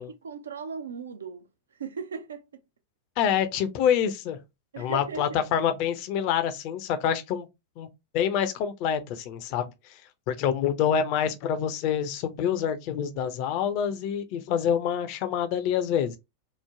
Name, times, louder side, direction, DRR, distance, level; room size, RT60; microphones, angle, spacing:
voice 1, 0.0-2.6 4.7-5.4, right 6 dB, 70° right, 0.4 m, -38 dB
voice 2, 3.2-4.4 4.8-7.5 7.8-7.9 8.1-10.0 10.3-16.2, left 8 dB, 45° left, 0.5 m, -26 dB
3.1 x 2.1 x 2.4 m
figure-of-eight pair, 90°, 0 cm